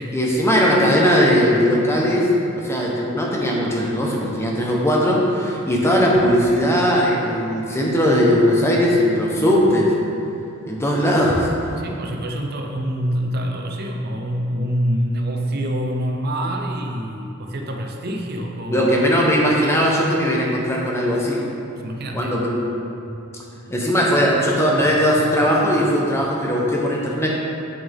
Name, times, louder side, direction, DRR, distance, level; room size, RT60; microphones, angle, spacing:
voice 1, 0.1-9.9 10.7-11.5 18.7-21.4 22.1-22.6 23.7-27.3, equal, 10° left, -3 dB, 1.0 m, -19 dB
voice 2, 11.7-18.9 21.7-22.3, equal, 45° right, 1 dB, 0.6 m, -26 dB
8.4 x 7.0 x 3.5 m, 2.8 s
head